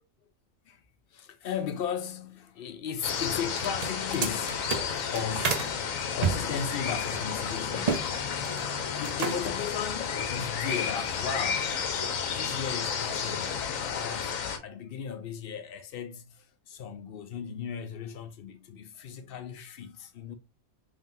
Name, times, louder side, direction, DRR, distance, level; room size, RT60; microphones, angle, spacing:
voice 1, 1.1-5.8 6.1-8.2 9.0-11.8 12.3-20.3, left 7 dB, 60° left, 0.6 m, -36 dB
sound 1, 3.0-14.6, left 7 dB, 85° left, 1.1 m, -32 dB
sound 2, 3.5-5.7 6.2-8.1 8.3-8.7 9.0-9.6, right 6 dB, 55° right, 0.4 m, -31 dB
sound 3, 4.0-9.0, left 6 dB, 35° left, 1.0 m, -49 dB
3.7 x 3.6 x 2.5 m
omnidirectional pair, 1.4 m